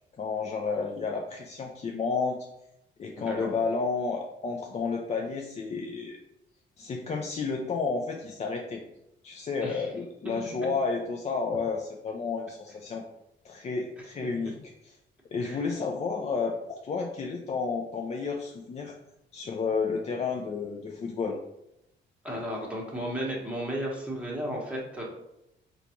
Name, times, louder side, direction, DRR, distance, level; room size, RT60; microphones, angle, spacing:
voice 1, 0.2-2.4 3.0-6.2 6.8-8.8 9.2-13.0 13.4-14.5 14.8-14.9 15.3-18.9 19.3-21.4, left 4 dB, 35° left, 1 dB, 0.4 m, -31 dB
voice 2, 3.2-3.5 9.6-9.9 14.0-14.1 15.4-15.6 19.4-19.6 22.2-25.0, equal, 5° right, -3 dB, 1.0 m, -34 dB
3.8 x 2.3 x 2.9 m, 0.85 s
cardioid pair, 90°, 20 cm